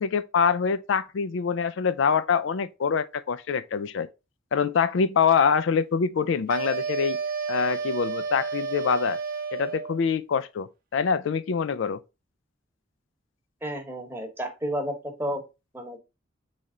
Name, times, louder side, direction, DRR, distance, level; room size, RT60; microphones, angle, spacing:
voice 1, 0.0-4.1 4.5-7.2 7.5-9.2 9.5-12.0, left 6 dB, 85° left, 0.4 m, -25 dB
sound 1, 6.5-10.0, right 5 dB, 50° right, 0.5 m, -31 dB
voice 2, 13.6-15.4 15.7-16.0, equal, 10° right, 0.9 m, -31 dB
4.1 x 3.3 x 3.7 m
head